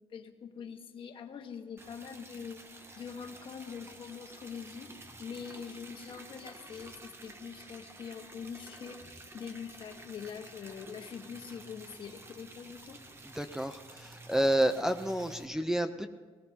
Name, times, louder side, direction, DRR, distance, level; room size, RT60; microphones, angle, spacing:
voice 1, 0.0-2.6 3.0-13.0, left 6 dB, 55° left, 5 dB, 1.5 m, -44 dB
Liquid, 1.8-15.4, right 2 dB, 25° right, 1.2 m, -51 dB
voice 2, 13.3-16.1, right 1 dB, 5° right, 5 dB, 0.6 m, -30 dB
19.5 x 17.5 x 2.9 m, 1.5 s
cardioid pair, 130°, 11 cm